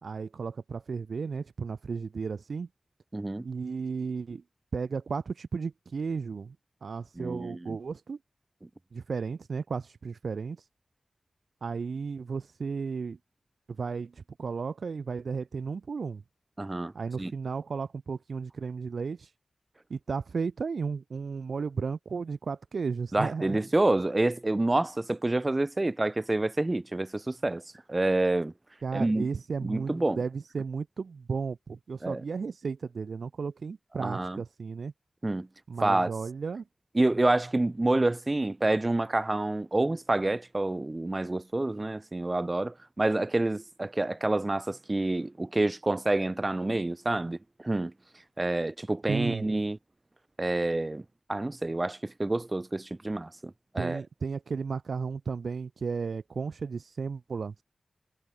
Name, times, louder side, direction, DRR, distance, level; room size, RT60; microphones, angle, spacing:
voice 1, 0.0-2.7 3.4-4.4 4.7-6.6 6.8-8.2 8.9-10.6 11.6-13.2 13.7-16.2 16.9-19.3 19.9-23.6 28.8-34.9 35.7-36.6 49.1-49.5 53.8-57.6, right 5 dB, 75° right, 5.0 m, -34 dB
voice 2, 3.1-3.4 7.2-7.8 16.6-16.9 17.2-17.3 23.1-27.6 27.9-28.5 28.9-29.3 29.6-30.2 32.0-32.2 34.0-34.4 35.2-35.5 35.8-36.1 37.0-47.9 48.4-49.8 50.4-51.0 51.3-54.0, right 2 dB, 25° right, 3.5 m, -28 dB
wide cardioid pair, 95°, 0 cm